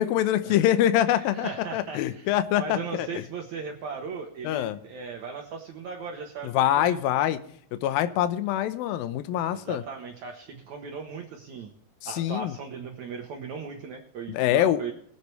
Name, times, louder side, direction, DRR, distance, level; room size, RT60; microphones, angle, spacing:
voice 1, 0.0-3.2 4.4-4.8 6.4-7.4 7.8-9.8 12.2-12.5 14.3-14.8, left 12 dB, 75° left, 11 dB, 2.4 m, -24 dB
voice 2, 1.1-7.0 9.5-11.7 12.1-14.9, right 5 dB, 65° right, 3 dB, 1.9 m, -38 dB
22.0 x 8.2 x 3.3 m, 0.66 s
omnidirectional pair, 4.6 m